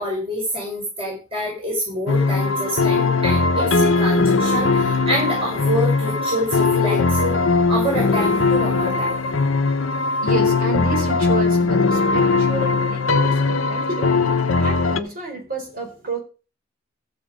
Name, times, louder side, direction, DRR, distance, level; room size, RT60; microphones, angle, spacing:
voice 1, 0.0-7.3 7.7-9.1, equal, 30° right, -3 dB, 5.7 m, -26 dB
sound 1, 2.1-15.0, left 3 dB, 80° left, 1.0 m, -19 dB
voice 2, 10.2-14.2 14.6-16.2, right 2 dB, 45° right, 3 dB, 4.5 m, -30 dB
14.5 x 7.2 x 5.1 m, 0.34 s
head